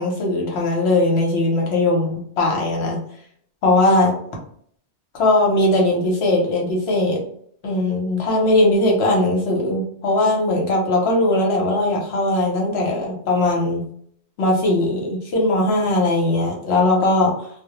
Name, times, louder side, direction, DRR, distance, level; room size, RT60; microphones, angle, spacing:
voice 1, 0.0-3.0 3.6-4.1 5.1-7.2 7.6-13.8 14.4-17.5, left 2 dB, 70° left, -1 dB, 1.0 m, -19 dB
2.1 x 2.1 x 2.9 m, 0.63 s
omnidirectional pair, 1.1 m